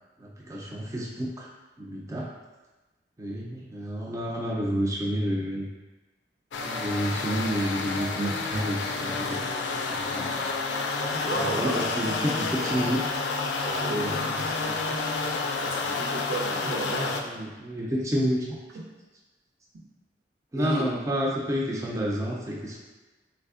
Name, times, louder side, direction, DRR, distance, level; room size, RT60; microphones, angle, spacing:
voice 1, 0.2-1.5 1.8-2.3 3.2-5.7 6.6-10.4 11.3-13.3 13.8-15.0 17.2-18.6 20.5-22.8, equal, 15° right, -3 dB, 0.3 m, -30 dB
sound 1, 6.5-17.2, left 3 dB, 75° left, 0.3 m, -29 dB
voice 2, 11.0-11.8 13.6-14.3 15.6-17.2 18.7-18.9 20.5-20.8, right 1 dB, 80° right, -1 dB, 0.6 m, -32 dB
3.3 x 3.1 x 2.4 m, 1.2 s
head